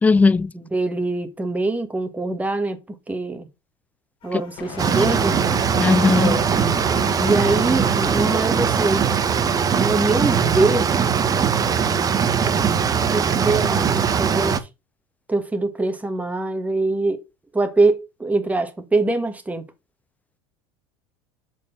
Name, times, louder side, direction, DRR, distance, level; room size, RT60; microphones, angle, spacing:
voice 1, 0.0-0.5 5.0-5.1 5.8-6.4, left 4 dB, 10° left, 0.4 m, -17 dB
voice 2, 0.5-2.8 3.1-3.5 4.2-5.4 6.2-6.5 7.2-9.1 9.8-10.9 13.1-14.7 15.3-17.2 17.5-19.6, right 2 dB, 10° right, 1.7 m, -23 dB
sound 1, 4.2-9.5, left 6 dB, 45° left, 1.7 m, -37 dB
sound 2, 4.8-14.6, right 7 dB, 30° right, 1.1 m, -20 dB
7.2 x 4.5 x 5.4 m
hypercardioid pair, 80°, 12 cm